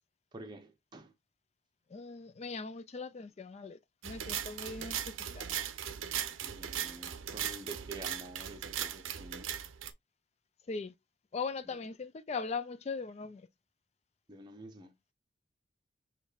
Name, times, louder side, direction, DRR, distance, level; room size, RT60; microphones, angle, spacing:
voice 1, 0.3-1.1 6.4-9.5 11.7-11.8 14.3-15.1, right 2 dB, 20° right, 0.6 m, -48 dB
voice 2, 1.9-5.0 5.3-5.6 10.7-10.9 11.3-13.5, left 4 dB, 35° left, 0.3 m, -40 dB
sound 1, 4.0-9.9, right 9 dB, 85° right, 0.7 m, -38 dB
6.4 x 3.1 x 2.3 m
head